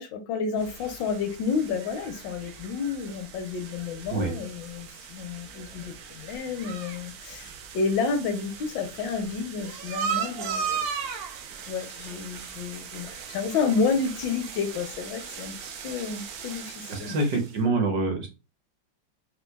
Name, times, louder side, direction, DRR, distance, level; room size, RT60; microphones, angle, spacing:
voice 1, 0.0-10.9 11.7-15.5 15.8-17.2, left 5 dB, 75° left, 1.2 m, -30 dB
sound 1, 0.6-17.6, right 7 dB, 85° right, 0.8 m, -38 dB
voice 2, 16.9-18.3, right 3 dB, 65° right, 1.3 m, -26 dB
4.5 x 2.2 x 2.2 m
omnidirectional pair, 2.1 m